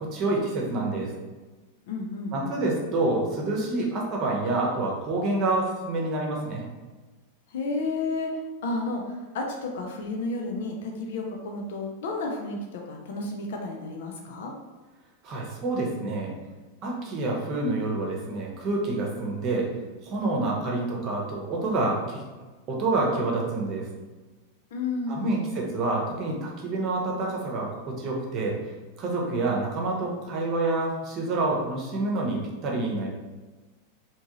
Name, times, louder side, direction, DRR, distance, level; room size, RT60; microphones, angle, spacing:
voice 1, 0.1-1.1 2.3-6.7 15.2-16.3 16.8-19.7 20.0-22.3 22.7-23.9 25.1-28.6 29.0-33.1, right 2 dB, 35° right, -1 dB, 0.9 m, -27 dB
voice 2, 1.9-2.6 7.5-8.3 8.6-14.5 24.7-25.3, left 3 dB, 55° left, 1 dB, 0.5 m, -32 dB
3.5 x 2.9 x 2.9 m, 1.3 s
figure-of-eight pair, 90°, 0 cm